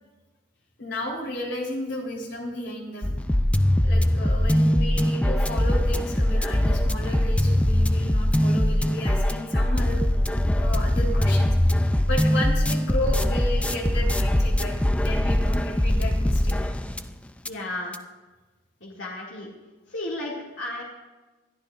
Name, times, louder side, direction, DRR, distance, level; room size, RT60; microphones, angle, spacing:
voice 1, 0.8-3.1 3.8-10.0 10.6-16.7, left 1 dB, 70° left, -1 dB, 3.6 m, -33 dB
sound 1, 3.0-17.1 17.5-17.6 17.9-18.0, left 1 dB, 5° left, 0.3 m, -22 dB
voice 2, 17.4-18.0 18.8-19.5 19.9-20.8, left 1 dB, 90° left, -4 dB, 2.4 m, -33 dB
21.0 x 12.5 x 2.5 m, 1.2 s
head